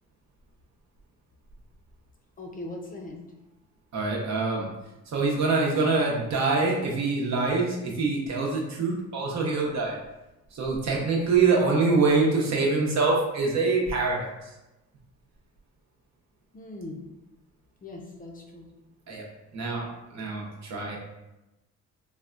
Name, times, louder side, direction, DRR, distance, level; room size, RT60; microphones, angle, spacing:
voice 1, 2.4-3.3 16.5-17.0 17.8-18.7, left 2 dB, 30° left, 1 dB, 0.5 m, -40 dB
voice 2, 3.9-4.7 5.1-10.0 10.5-14.3 19.1-19.2 19.5-19.9 20.1-21.0, right 3 dB, 65° right, -2 dB, 0.8 m, -25 dB
3.5 x 2.2 x 2.4 m, 0.98 s
cardioid pair, 90°, 30 cm